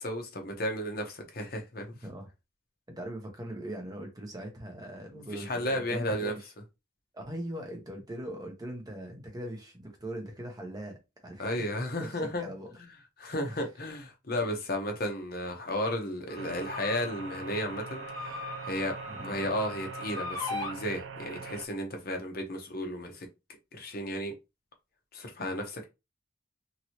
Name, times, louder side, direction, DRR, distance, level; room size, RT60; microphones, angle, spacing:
voice 1, 0.0-1.9 5.3-6.3 11.4-12.5 13.2-18.0 18.3-19.0 19.2-23.3 23.7-24.3 25.1-25.8, left 1 dB, 50° left, 0.8 m, -33 dB
voice 2, 3.0-6.5 7.1-11.7 12.0-12.8 13.5-13.6 19.1-19.3, right 1 dB, 20° right, 0.7 m, -40 dB
sound 1, 16.3-20.7, left 3 dB, 20° left, 1.0 m, -40 dB
sound 2, 16.4-21.7, right 5 dB, 75° right, 0.4 m, -43 dB
3.0 x 2.7 x 2.9 m
head